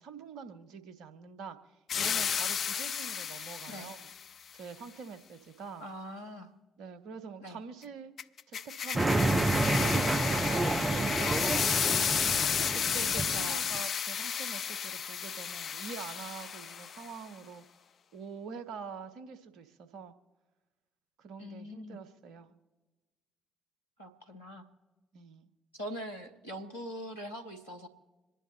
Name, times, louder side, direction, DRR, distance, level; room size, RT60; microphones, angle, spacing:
voice 1, 0.0-4.0 4.5-5.9 6.8-8.1 8.5-9.3 9.7-11.7 12.3-17.6 18.1-20.1 21.2-22.5 25.1-25.5, right 6 dB, 65° right, 9 dB, 1.0 m, -45 dB
sound 1, 1.9-4.2 8.2-17.1, left 7 dB, 50° left, 0.3 m, -32 dB
voice 2, 5.8-6.5 7.4-7.6 13.1-13.6 21.4-22.0 24.0-24.6 25.7-27.9, equal, 90° left, 1 dB, 1.3 m, -42 dB
sound 2, 8.9-13.8, right 2 dB, 20° right, 0.7 m, -29 dB
26.5 x 10.5 x 2.9 m, 1.2 s
figure-of-eight pair, 45°, 0 cm